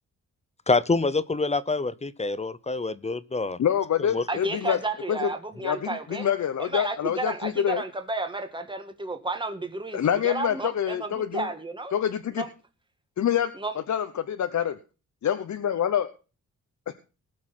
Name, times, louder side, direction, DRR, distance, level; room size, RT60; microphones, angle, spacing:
voice 1, 0.7-3.6 4.1-4.2, left 3 dB, 20° left, 18 dB, 0.6 m, -26 dB
voice 2, 3.6-4.8 5.1-5.3 5.6-7.8 9.9-11.5 11.9-12.4 13.2-13.5 13.9-14.8 15.2-16.1, left 9 dB, 65° left, 9 dB, 0.9 m, -26 dB
voice 3, 4.3-6.3 6.6-11.9 12.3-12.5 13.6-13.7, right 2 dB, 15° right, 7 dB, 1.8 m, -32 dB
19.0 x 6.4 x 6.0 m, 0.35 s
cardioid pair, 105°, 31 cm